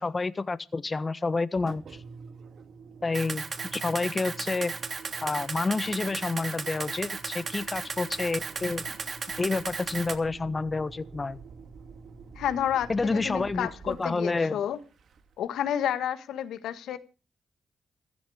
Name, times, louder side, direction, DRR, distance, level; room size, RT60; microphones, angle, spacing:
voice 1, 0.0-2.0 3.0-3.5 3.7-4.7 5.2-8.8 9.4-11.4 12.9-14.6, left 3 dB, 40° left, 1.3 m, -29 dB
Engine, 1.5-15.5, right 5 dB, 75° right, 2.3 m, -48 dB
Camera, 3.1-10.2, right 5 dB, 60° right, 3.0 m, -35 dB
voice 2, 12.3-14.8 15.4-17.0, left 10 dB, 85° left, 1.6 m, -30 dB
15.5 x 14.5 x 5.0 m
supercardioid pair, 45°, 0 cm